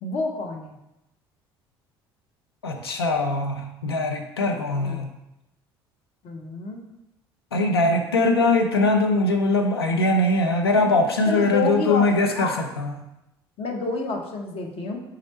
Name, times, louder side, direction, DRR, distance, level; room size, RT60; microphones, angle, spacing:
voice 1, 0.0-0.8 4.8-5.1 6.2-6.8 11.3-12.6 13.6-15.0, left 3 dB, 50° left, 2 dB, 0.8 m, -29 dB
voice 2, 2.6-5.1 7.5-12.9, left 2 dB, 90° left, 4 dB, 0.5 m, -21 dB
3.8 x 3.1 x 4.1 m, 0.91 s
figure-of-eight pair, 60°, 13 cm